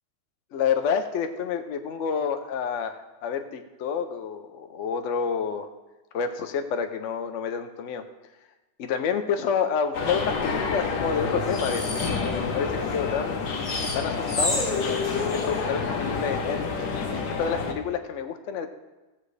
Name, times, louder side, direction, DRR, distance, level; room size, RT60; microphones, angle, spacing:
voice 1, 0.5-5.7 6.1-8.0 8.8-13.5 13.9-14.6 15.2-16.6 17.4-18.7, left 6 dB, 75° left, 7 dB, 0.6 m, -29 dB
sound 1, 9.9-17.7, left 4 dB, 55° left, 1.5 m, -29 dB
sound 2, 11.5-12.1 13.6-15.5, left 3 dB, 35° left, 2.2 m, -29 dB
16.5 x 7.3 x 3.3 m, 1.1 s
omnidirectional pair, 2.2 m